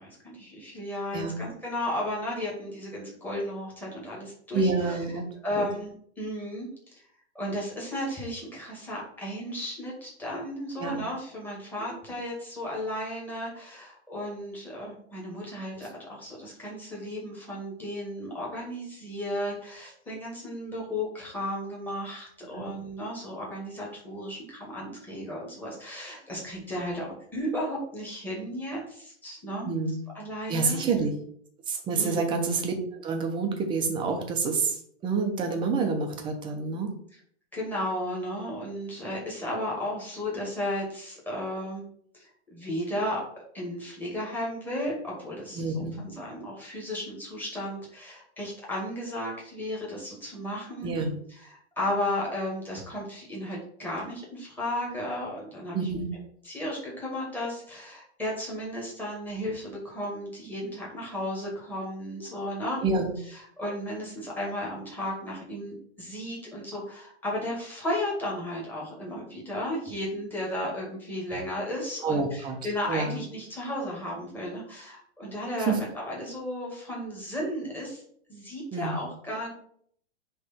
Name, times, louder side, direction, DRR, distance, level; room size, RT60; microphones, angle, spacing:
voice 1, 0.0-7.0 7.3-29.7 30.1-30.8 31.9-32.3 37.1-37.2 37.5-41.8 42.1-43.2 43.5-50.9 51.3-55.9 56.4-62.9 63.2-78.0 78.3-79.5, left 1 dB, 5° left, -4 dB, 2.1 m, -34 dB
voice 2, 4.5-5.2 5.6-5.7 10.8-10.9 11.8-11.9 22.6-22.7 29.7-30.0 30.5-31.1 31.7-34.8 35.0-36.9 45.6-45.9 50.8-51.1 55.7-56.1 62.8-63.1 72.0-72.5 72.9-73.1 75.7-75.8 78.7-79.0, right 4 dB, 15° right, 3 dB, 0.9 m, -27 dB
10.0 x 3.4 x 4.4 m, 0.63 s
hypercardioid pair, 160°, 34 cm